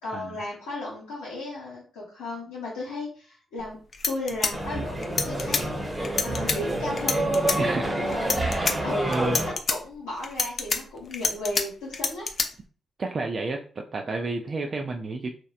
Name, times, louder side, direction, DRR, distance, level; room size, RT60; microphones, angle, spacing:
voice 1, 0.0-3.8 4.1-5.7 6.2-7.3 7.9-8.3 8.8-12.3, left 1 dB, 90° left, -8 dB, 0.7 m, -34 dB
sound 1, 3.6-3.7 3.9-5.6 6.0-6.6 7.0-7.6 8.1-8.7 9.1-9.8 10.2-11.6 11.9-12.5, left 4 dB, 55° left, 0.4 m, -26 dB
sound 2, 4.5-9.5, right 1 dB, 25° right, 0.9 m, -28 dB
voice 2, 7.6-7.9 8.4-9.4 13.0-15.3, right 3 dB, 50° right, 3 dB, 0.3 m, -31 dB
2.8 x 2.0 x 2.3 m, 0.41 s
hypercardioid pair, 45°, 0 cm